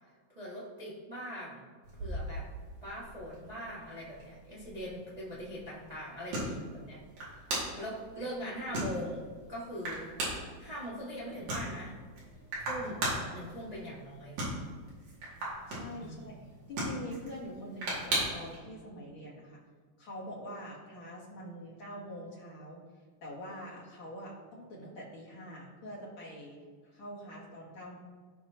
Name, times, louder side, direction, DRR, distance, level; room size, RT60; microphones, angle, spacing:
voice 1, 0.3-1.7 2.0-2.5 2.8-7.0 7.8-10.1 10.6-12.0 12.7-14.4 16.0-16.3, equal, 25° right, -7 dB, 0.8 m, -41 dB
sound 1, 1.8-18.6, right 1 dB, 90° right, 3.9 m, -39 dB
voice 2, 15.4-16.3 16.7-19.6 20.0-22.8 23.2-28.0, equal, 50° left, -4 dB, 2.4 m, -45 dB
16.0 x 5.8 x 3.0 m, 1.5 s
omnidirectional pair, 3.4 m